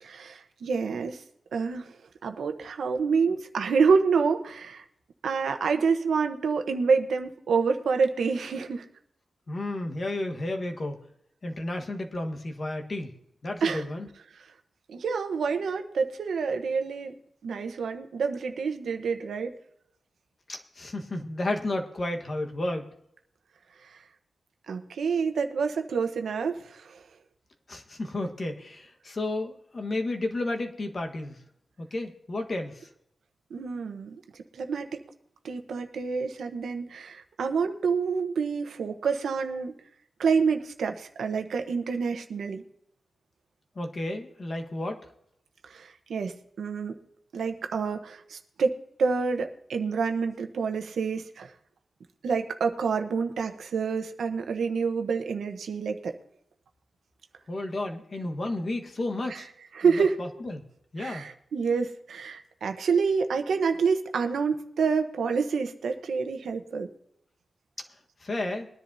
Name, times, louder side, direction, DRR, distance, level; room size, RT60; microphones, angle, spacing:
voice 1, 0.0-1.2 1.5-4.8 5.2-8.9 13.6-13.8 14.3-14.4 14.9-17.1 17.4-19.5 23.8-24.0 24.7-27.0 33.5-35.0 35.4-39.7 40.2-42.6 45.6-47.0 47.3-51.5 52.2-56.2 59.3-59.4 59.7-60.2 61.0-66.9, right 5 dB, 90° right, 6 dB, 1.0 m, -28 dB
voice 2, 9.5-11.0 11.4-13.1 13.4-14.1 20.5-22.9 27.7-31.4 31.8-32.9 43.7-45.0 57.5-59.5 60.0-60.6 60.9-61.2 68.2-68.7, left 2 dB, 40° left, 4 dB, 1.4 m, -32 dB
21.5 x 10.5 x 2.7 m, 0.74 s
wide cardioid pair, 115°, 0 cm